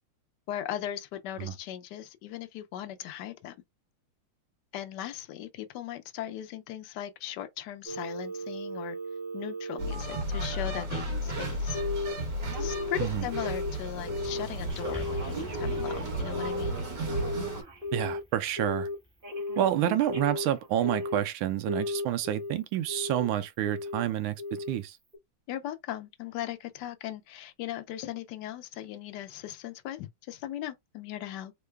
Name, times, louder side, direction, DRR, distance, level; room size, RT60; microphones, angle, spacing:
voice 1, 0.5-3.5 4.7-9.0 9.3-11.8 12.6-16.8 19.9-20.0 25.5-31.5, left 11 dB, 75° left, 1.0 m, -38 dB
Telephone, 7.9-11.1 11.7-12.1 12.4-13.8 14.1-14.5 14.8-18.2 18.6-19.0 19.2-21.3 21.7-22.5 22.9-23.3 23.6-24.0 24.4-24.8 25.1-25.2, left 2 dB, 35° right, 0.9 m, -36 dB
sound 1, 9.8-17.6, right 1 dB, 55° right, 1.7 m, -33 dB
sound 2, 14.7-19.2 20.1-20.2, left 1 dB, 10° right, 0.9 m, -46 dB
voice 2, 17.9-18.9 19.6-25.0, right 12 dB, 80° right, 1.4 m, -29 dB
3.7 x 2.1 x 3.3 m
omnidirectional pair, 2.3 m